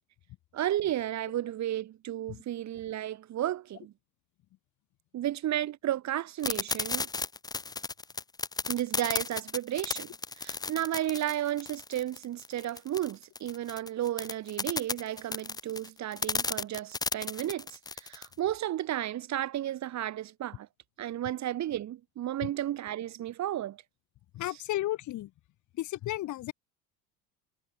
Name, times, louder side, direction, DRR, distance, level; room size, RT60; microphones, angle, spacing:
voice 1, 0.5-3.9 5.1-7.1 8.7-10.1 10.4-20.7 21.0-23.8, right 12 dB, 40° right, 1.6 m, -33 dB
sound 1, 6.4-18.3, left 4 dB, 10° left, 0.7 m, -34 dB
voice 2, 24.3-25.3 25.8-26.5, left 15 dB, 40° left, 1.4 m, -33 dB
figure-of-eight pair, 70°, 45 cm